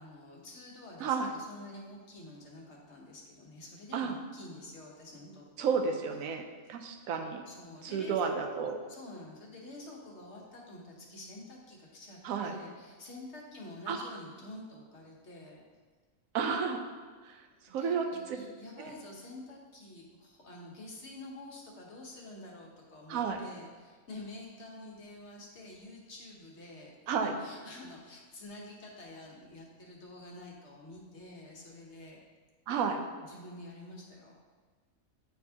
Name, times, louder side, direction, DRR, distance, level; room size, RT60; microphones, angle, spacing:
voice 1, 0.0-5.9 7.5-8.2 8.9-15.6 17.6-32.2 32.9-34.3, left 2 dB, 55° left, -2 dB, 1.3 m, -48 dB
voice 2, 1.0-1.3 3.9-4.1 5.6-7.4 7.8-8.8 12.2-12.6 13.9-14.0 16.3-16.8 17.2-17.4 17.7-18.4 18.8-18.9 23.1-23.4 27.1-27.3 32.7-33.0, right 6 dB, 75° right, 5 dB, 1.1 m, -32 dB
9.0 x 4.5 x 2.8 m, 1.5 s
omnidirectional pair, 1.5 m